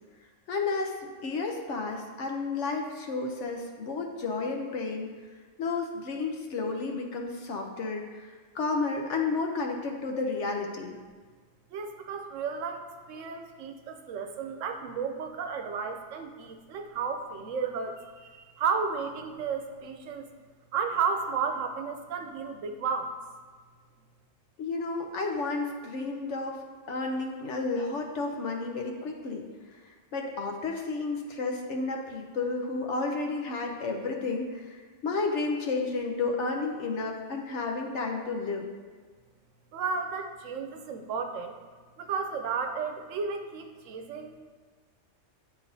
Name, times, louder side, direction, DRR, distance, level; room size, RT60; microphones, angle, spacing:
voice 1, 0.5-0.9 1.2-5.1 5.6-8.0 8.5-10.9 24.6-26.6 26.9-29.4 30.1-34.6 35.0-38.7, left 3 dB, 70° left, 2 dB, 1.0 m, -31 dB
voice 2, 11.7-20.3 20.7-23.1 39.7-41.6 42.0-44.3, right 5 dB, 85° right, 5 dB, 1.0 m, -33 dB
9.7 x 4.0 x 2.7 m, 1.5 s
omnidirectional pair, 1.3 m